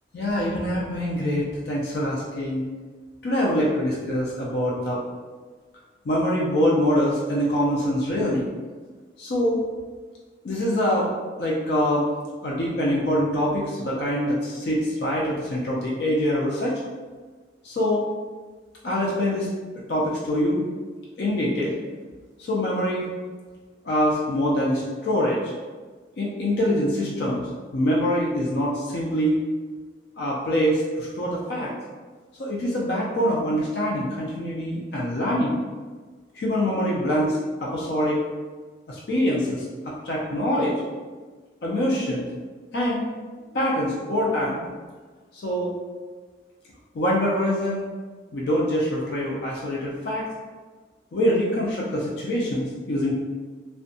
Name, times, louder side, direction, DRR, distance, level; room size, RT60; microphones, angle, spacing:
voice 1, 0.1-2.7 3.2-5.0 6.1-8.5 9.2-9.6 10.4-11.1 11.4-12.1 12.4-16.8 17.6-18.1 18.8-19.5 19.9-20.7 21.2-21.7 22.4-23.1 23.8-25.5 26.2-27.5 27.7-29.4 30.2-31.7 32.4-35.6 36.3-38.2 38.9-40.7 41.6-42.3 42.7-43.0 43.5-44.6 45.4-45.7 46.9-47.9 48.3-50.2 51.1-53.1, equal, 65° left, -5 dB, 0.4 m, -24 dB
2.6 x 2.1 x 2.6 m, 1.4 s
head